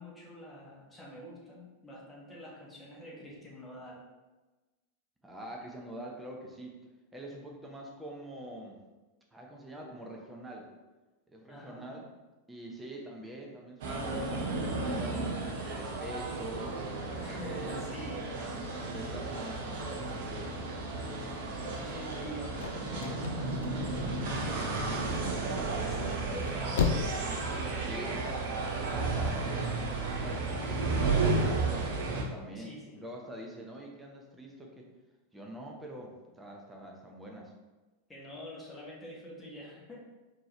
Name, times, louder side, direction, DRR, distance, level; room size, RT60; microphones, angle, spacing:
voice 1, 0.0-4.0 11.5-11.9 17.2-18.3 21.7-27.0 27.5-28.2 32.5-33.0 38.1-40.0, equal, 10° left, -5 dB, 1.2 m, -46 dB
voice 2, 5.2-6.7 7.1-8.8 9.3-10.7 11.3-12.1 12.5-15.3 15.6-17.8 18.8-20.6 27.9-28.2 28.7-34.9 35.3-37.5, right 1 dB, 5° right, -1 dB, 0.7 m, -45 dB
sound 1, 13.8-32.2, right 3 dB, 50° right, 0.7 m, -33 dB
sound 2, 22.3-24.4 24.9-25.4 26.2-27.3 27.6-27.7, left 6 dB, 60° left, 0.4 m, -32 dB
4.4 x 2.9 x 3.2 m, 1.2 s
figure-of-eight pair, 90°, 0 cm